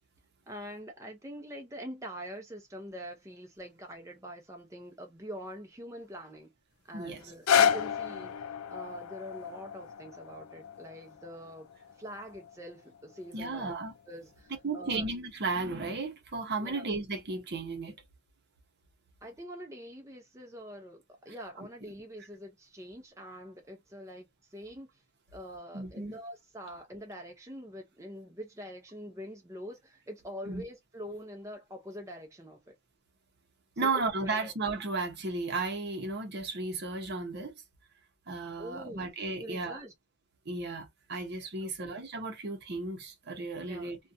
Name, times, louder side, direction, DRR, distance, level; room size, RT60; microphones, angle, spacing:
voice 1, 0.5-6.5 6.8-8.3 8.7-11.7 12.0-13.8 14.1-15.1 16.6-16.9 19.2-24.3 24.5-24.9 25.3-32.8 33.8-34.5 38.6-39.1 39.4-39.9 41.6-41.9 43.7-43.9, equal, 15° right, 0.5 m, -44 dB
sound 1, 7.2-13.3 14.0-14.1, left 8 dB, 85° left, 0.4 m, -31 dB
voice 2, 13.3-13.9 14.6-18.0 21.6-21.7 25.7-26.2 30.5-30.6 33.8-37.5 38.3-39.8 40.5-44.0, right 3 dB, 50° right, 0.7 m, -34 dB
2.5 x 2.2 x 2.6 m
head